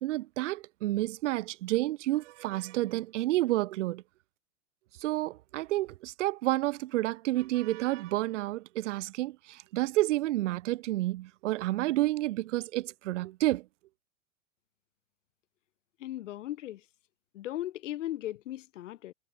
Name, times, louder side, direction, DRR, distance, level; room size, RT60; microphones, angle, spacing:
voice 1, 0.0-4.0 5.0-13.7, right 17 dB, 65° right, 0.5 m, -30 dB
voice 2, 16.0-16.8 17.3-19.1, left 14 dB, 65° left, 1.5 m, -37 dB
hypercardioid pair, 105°, 40 cm